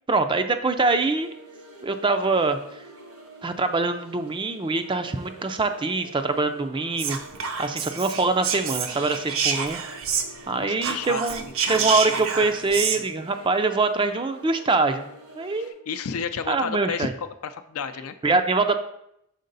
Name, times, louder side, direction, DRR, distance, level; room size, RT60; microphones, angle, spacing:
voice 1, 0.1-1.3 1.8-2.6 3.4-7.2 7.6-10.0 10.5-11.4 11.7-15.1 15.3-15.7 16.5-17.1 18.2-18.8, right 3 dB, 20° right, 8 dB, 0.3 m, -24 dB
sound 1, 1.0-15.7, right 2 dB, 80° right, 1.3 m, -47 dB
Whispering, 7.0-10.5 10.8-13.0, right 6 dB, 65° right, 0.6 m, -28 dB
voice 2, 10.5-12.5 12.9-13.0 15.6-17.1 17.4-18.1, left 6 dB, 75° left, 10 dB, 0.5 m, -33 dB
6.5 x 4.7 x 3.9 m, 0.78 s
head